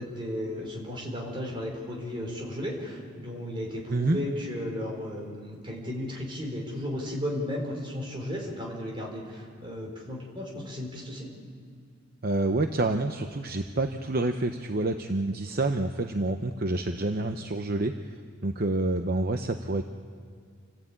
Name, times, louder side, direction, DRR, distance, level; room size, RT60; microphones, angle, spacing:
voice 1, 0.0-11.3, left 1 dB, 25° right, -1 dB, 4.5 m, -34 dB
voice 2, 12.2-18.2 18.4-19.8, right 2 dB, 45° right, 6 dB, 0.8 m, -28 dB
28.0 x 15.0 x 8.8 m, 2.2 s
head